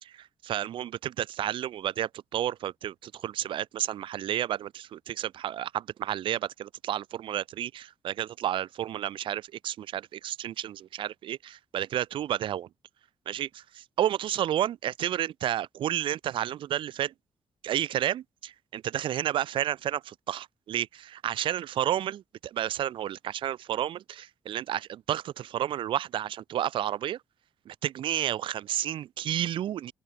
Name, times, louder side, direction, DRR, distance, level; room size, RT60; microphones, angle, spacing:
voice 1, 0.0-12.7 13.3-17.1 17.6-27.2 27.7-29.9, right 11 dB, 70° right, 0.6 m, -31 dB
open air
hypercardioid pair, 50°, 9 cm